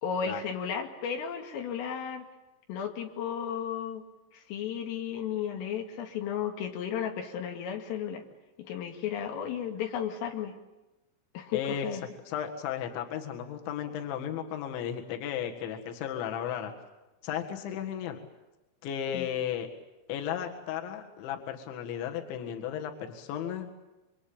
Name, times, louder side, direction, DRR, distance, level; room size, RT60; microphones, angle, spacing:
voice 1, 0.0-2.3 2.7-4.0 4.3-8.2 8.6-10.5 11.3-12.1 19.1-19.3, left 8 dB, 85° left, 3 dB, 4.8 m, -34 dB
voice 2, 11.5-11.9 12.3-16.7 17.2-18.2 18.8-19.7 20.1-23.7, left 9 dB, 70° left, 4 dB, 4.0 m, -34 dB
27.0 x 24.5 x 8.9 m, 1.0 s
omnidirectional pair, 5.7 m